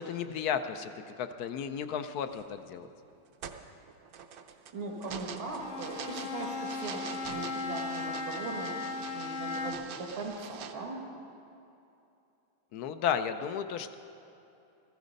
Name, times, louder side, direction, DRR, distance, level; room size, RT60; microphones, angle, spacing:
voice 1, 0.0-2.9 12.7-13.9, left 8 dB, 70° left, 10 dB, 0.9 m, -33 dB
sound 1, 2.3-2.6 3.1-10.7, right 7 dB, 60° right, 1.0 m, -45 dB
voice 2, 4.7-11.0, right 3 dB, 85° right, -2 dB, 2.5 m, -39 dB
Bowed string instrument, 5.6-10.0, left 4 dB, 85° left, 0.6 m, -37 dB
16.0 x 14.5 x 5.2 m, 2.7 s
omnidirectional pair, 2.2 m